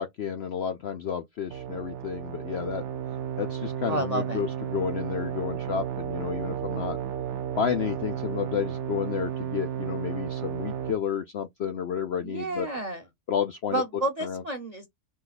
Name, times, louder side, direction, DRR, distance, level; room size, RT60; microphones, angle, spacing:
voice 1, 0.0-2.8 3.4-7.0 7.6-12.7 13.3-13.8 14.2-14.4, left 8 dB, 80° left, 0.5 m, -31 dB
sound 1, 1.5-10.9, right 9 dB, 65° right, 0.7 m, -33 dB
voice 2, 3.9-4.4 12.1-13.1 13.7-14.9, right 2 dB, 35° right, 0.7 m, -30 dB
5.1 x 2.3 x 3.9 m
omnidirectional pair, 1.7 m